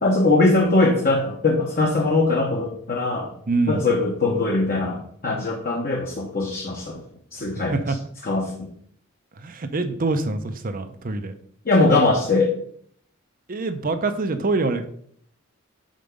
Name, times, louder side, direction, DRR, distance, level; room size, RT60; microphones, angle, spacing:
voice 1, 0.0-3.3 3.7-7.0 7.3-8.0 8.2-8.7 11.6-12.5, left 2 dB, 45° left, 0 dB, 1.1 m, -21 dB
voice 2, 3.5-3.8 7.7-8.0 9.4-11.3 13.5-14.8, right 3 dB, 45° right, 9 dB, 0.7 m, -25 dB
5.3 x 4.9 x 6.4 m, 0.64 s
head